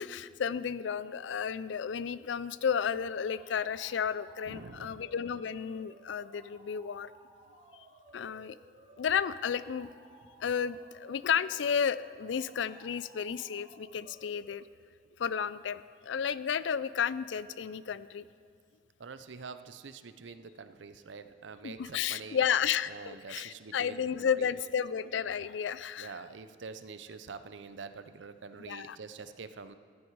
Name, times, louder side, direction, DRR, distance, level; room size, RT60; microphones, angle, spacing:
voice 1, 0.0-7.1 8.1-8.6 9.0-9.9 10.4-14.6 15.2-18.2 21.6-26.1 28.6-29.0, left 7 dB, 80° left, 17 dB, 0.4 m, -32 dB
sound 1, 2.5-14.5, right 1 dB, 35° right, 1.6 m, -58 dB
voice 2, 4.5-5.0 19.0-22.4 22.9-24.5 26.0-29.8, right 5 dB, 80° right, 11 dB, 0.6 m, -46 dB
14.0 x 11.5 x 4.7 m, 2.2 s
head